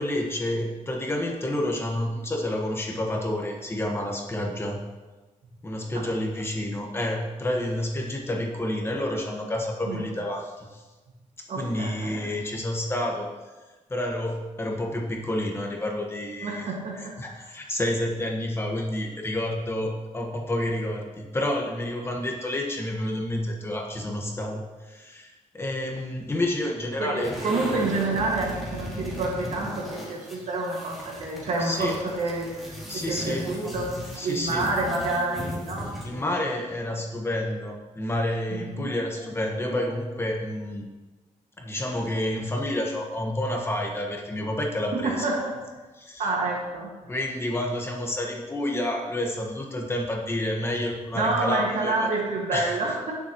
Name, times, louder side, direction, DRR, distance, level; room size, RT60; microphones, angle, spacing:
voice 1, 0.0-4.8 5.6-10.8 11.4-13.3 13.9-27.3 31.6-31.9 32.9-33.7 34.2-34.7 36.0-40.8 41.6-45.3 46.0-46.3 47.1-52.1 52.5-52.8, left 1 dB, 20° left, 0 dB, 1.4 m, -29 dB
voice 2, 11.5-12.2 16.4-17.4 27.0-33.9 34.2-36.3 38.5-38.9 44.9-45.6 46.2-46.9 51.1-53.1, right 3 dB, 65° right, -2 dB, 2.0 m, -28 dB
sound 1, 27.2-36.2, equal, ahead, 2.6 m, -37 dB
17.5 x 7.3 x 3.1 m, 1.2 s
wide cardioid pair, 160°, 13 cm